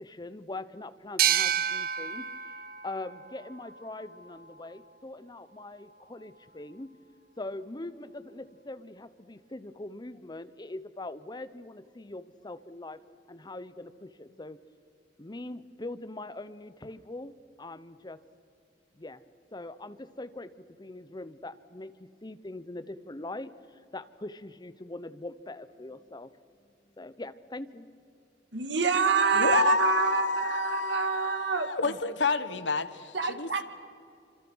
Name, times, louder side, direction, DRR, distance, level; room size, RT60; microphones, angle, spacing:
voice 1, 0.0-2.3 2.8-6.9 7.4-13.0 13.3-14.6 15.2-18.2 18.9-19.2 19.5-26.3 27.0-27.9, left 2 dB, 25° left, 14 dB, 0.9 m, -42 dB
sound 1, 1.2-4.6, right 9 dB, 55° right, 0.9 m, -30 dB
voice 2, 28.5-31.7 33.1-33.6, right 5 dB, 75° right, 8 dB, 2.0 m, -26 dB
voice 3, 29.3-33.5, left 4 dB, 85° left, 13 dB, 1.3 m, -29 dB
26.5 x 26.5 x 6.3 m, 2.5 s
head